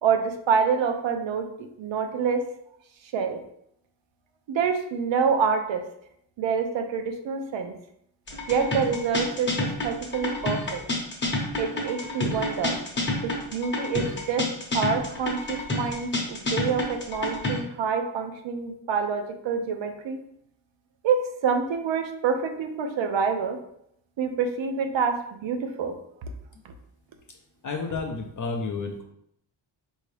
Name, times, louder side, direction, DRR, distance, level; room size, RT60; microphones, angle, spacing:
voice 1, 0.0-1.5 1.8-2.4 3.1-3.4 4.5-5.8 6.4-7.7 8.5-10.8 11.6-12.8 13.2-14.5 14.7-20.2 21.0-23.6 24.2-25.9, right 6 dB, 65° right, 6 dB, 0.6 m, -27 dB
sound 1, 8.3-17.6, left 2 dB, 25° left, 0.8 m, -29 dB
voice 2, 27.6-29.0, left 4 dB, 40° left, 2 dB, 0.4 m, -31 dB
4.5 x 2.7 x 3.2 m, 0.72 s
wide cardioid pair, 160°, 49 cm